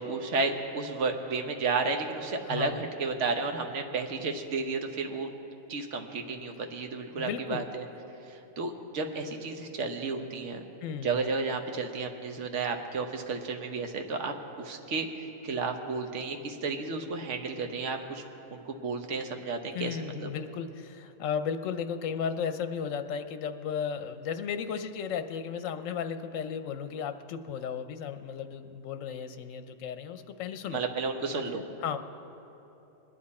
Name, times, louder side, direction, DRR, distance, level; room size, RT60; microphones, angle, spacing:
voice 1, 0.0-5.3 5.7-7.8 8.3-10.6 11.0-18.2 18.5-20.3 30.7-31.6, right 4 dB, 65° right, 4 dB, 1.3 m, -32 dB
voice 2, 2.4-2.8 7.2-7.7 10.8-11.2 19.7-30.8 31.8-32.0, left 7 dB, 80° left, 9 dB, 1.0 m, -34 dB
21.0 x 10.0 x 4.2 m, 3.0 s
omnidirectional pair, 1.3 m